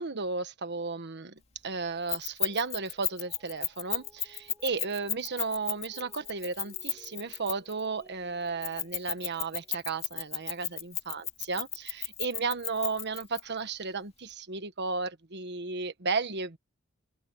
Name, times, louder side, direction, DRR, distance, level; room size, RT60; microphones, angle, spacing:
voice 1, 0.0-16.6, right 4 dB, 55° right, 1.4 m, -34 dB
Keys jangling, 2.1-7.8 8.6-13.4, left 9 dB, 30° left, 2.2 m, -33 dB
Mallet percussion, 2.5-10.6, right 1 dB, 15° right, 6.9 m, -61 dB
open air
head